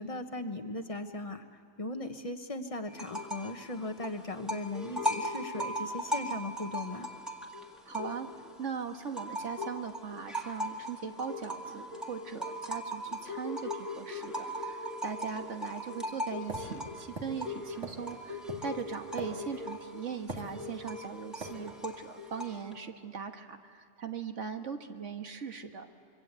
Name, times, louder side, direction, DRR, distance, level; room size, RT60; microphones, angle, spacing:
voice 1, 0.0-1.4 1.8-7.1, left 2 dB, 30° left, 7 dB, 1.3 m, -38 dB
sound 1, 2.9-3.6 3.8-8.5 8.9-22.7, equal, ahead, 1.9 m, -38 dB
voice 2, 7.9-8.3 8.6-25.9, right 6 dB, 85° right, 5 dB, 1.8 m, -40 dB
sound 2, 16.5-19.8 20.3-21.0 21.4-21.6, right 3 dB, 65° right, 3.0 m, -42 dB
26.0 x 24.0 x 8.3 m, 2.5 s
omnidirectional pair, 1.2 m